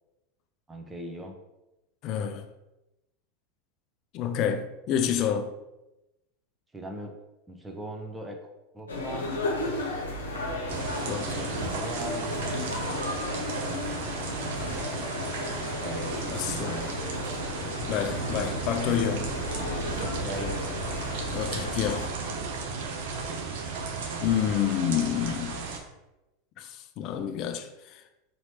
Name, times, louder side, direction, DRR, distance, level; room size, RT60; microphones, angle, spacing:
voice 1, 0.7-1.4 6.7-7.1 7.5-8.4 8.7-9.3 10.9-12.3 15.5-16.9 20.0-20.6, right 1 dB, 15° right, 0.7 m, -40 dB
voice 2, 2.0-2.5 4.1-5.5 11.1-11.4 14.6-14.8 16.3-16.8 17.9-19.3 21.3-22.1 24.2-25.6 26.6-28.0, left 9 dB, 45° left, 0.4 m, -29 dB
sound 1, 8.9-22.1, left 2 dB, 85° left, 0.8 m, -34 dB
sound 2, 10.7-25.8, right 4 dB, 65° right, 0.7 m, -34 dB
4.2 x 3.0 x 2.8 m
hypercardioid pair, 85°, 0 cm